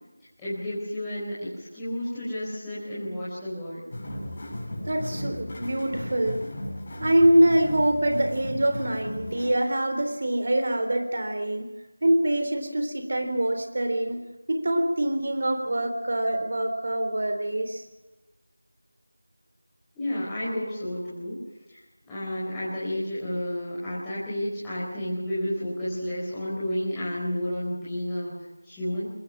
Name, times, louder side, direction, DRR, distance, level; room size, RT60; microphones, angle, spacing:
voice 1, 0.4-3.9 19.9-21.4 21.7-21.8 22.1-28.3 28.6-29.0, left 1 dB, 5° left, -12 dB, 4.6 m, -31 dB
sound 1, 3.9-9.5, left 1 dB, 35° left, 7.7 m, -36 dB
voice 2, 4.9-6.5 7.0-11.7 12.0-14.2 14.5-17.8, right 1 dB, 50° right, 6 dB, 3.8 m, -24 dB
23.5 x 21.0 x 6.2 m, 1.0 s
figure-of-eight pair, 170°, 0 cm